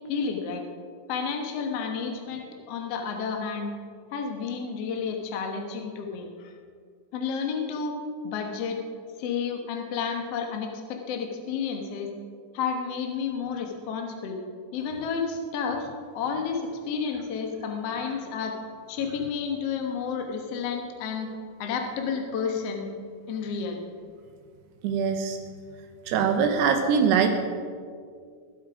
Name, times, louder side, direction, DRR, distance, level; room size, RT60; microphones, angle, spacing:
voice 1, 0.1-0.6 1.1-3.7 4.1-6.5 7.1-8.0 8.2-8.8 9.2-12.1 12.5-14.4 14.7-15.9 16.1-18.5 18.9-21.3 21.6-22.9 23.3-23.8, left 6 dB, 65° left, 2 dB, 1.5 m, -31 dB
voice 2, 24.8-25.4 26.1-27.3, right 6 dB, 80° right, 5 dB, 3.0 m, -22 dB
21.5 x 8.6 x 5.0 m, 2.1 s
omnidirectional pair, 4.8 m